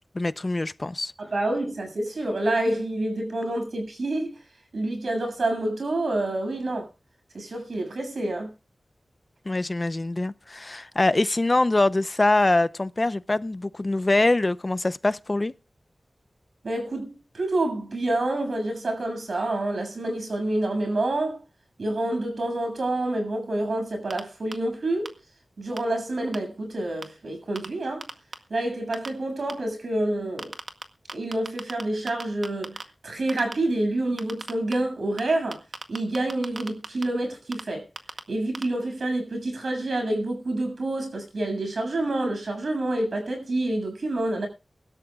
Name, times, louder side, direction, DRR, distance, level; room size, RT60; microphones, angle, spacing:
voice 1, 0.1-1.1 9.5-15.5, left 2 dB, 35° left, 0.7 m, -23 dB
voice 2, 1.2-4.4 4.7-6.9 7.3-8.5 16.6-21.4 21.8-25.2 25.6-28.1 28.5-30.5 31.1-32.8 33.0-35.6 35.9-37.9 38.3-44.5, right 1 dB, 80° right, 7.2 m, -28 dB
sound 1, 24.1-24.2 24.5-24.6 25.1-25.2 25.8-25.9 26.3-26.4 27.0-27.1 27.6-27.7 28.0-28.3 28.9-29.1 29.5-29.6 30.4-30.8 31.1-31.8 32.1-32.8 33.3-33.5 34.2-34.7 35.2-35.3 35.5-37.0 37.5-37.6 38.0-38.2 38.5-38.6, right 3 dB, 60° right, 1.8 m, -34 dB
24.0 x 13.0 x 2.4 m
wide cardioid pair, 65°, 0 cm